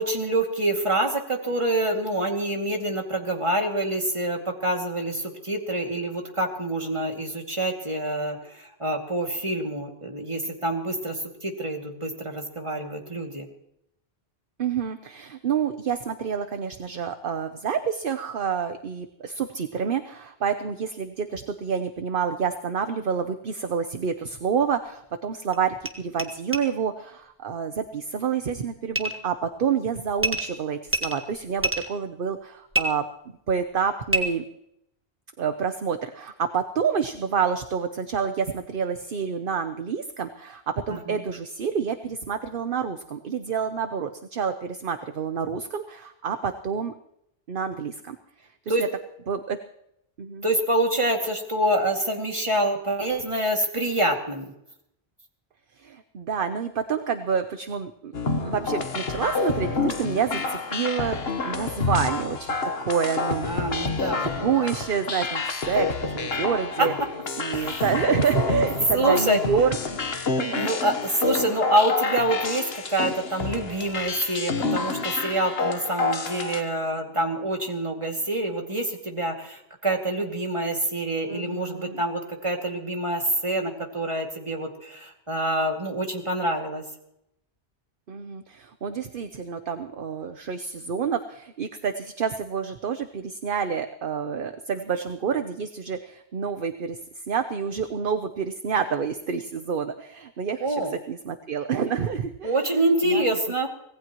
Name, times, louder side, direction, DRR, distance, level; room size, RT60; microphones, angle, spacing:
voice 1, 0.0-13.5 40.9-41.2 48.7-48.8 50.4-54.5 63.4-64.7 67.5-67.8 68.9-69.4 70.6-86.8 100.6-100.9 102.4-103.7, right 1 dB, 30° right, 2 dB, 2.5 m, -26 dB
voice 2, 14.6-33.0 33.5-34.4 35.4-46.9 47.5-48.2 48.8-48.9 49.3-49.6 50.2-50.5 55.8-58.1 58.4-63.5 64.2-66.9 67.4-69.8 70.4-70.7 81.3-82.0 88.1-103.3, right 6 dB, 60° right, 9 dB, 1.0 m, -28 dB
sound 1, 24.7-24.8 25.5-25.6 25.8-25.9 26.2-26.3 26.5-26.6 28.9-29.2 30.2-30.5 30.9-31.9 32.7-32.8 34.1-34.2, right 1 dB, 10° right, 1.6 m, -26 dB
sound 2, 58.1-76.6, left 4 dB, 70° left, 1.5 m, -28 dB
25.5 x 18.5 x 3.1 m, 0.80 s
omnidirectional pair, 1.1 m